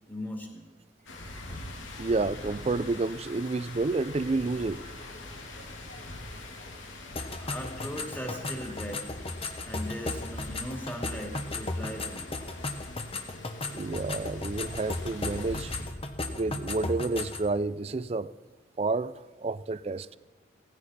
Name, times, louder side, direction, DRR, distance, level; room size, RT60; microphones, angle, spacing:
voice 1, 0.1-0.6 7.4-9.0 9.6-12.3, equal, 10° left, 2.3 m, -38 dB
sound 1, 1.1-15.9, left 2 dB, 85° left, 2.2 m, -43 dB
voice 2, 2.0-4.9 13.7-15.7 16.3-18.3 18.8-20.1, right 3 dB, 30° right, 0.4 m, -30 dB
sound 2, 7.1-17.5, left 2 dB, 30° left, 1.1 m, -36 dB
17.5 x 15.0 x 4.2 m
head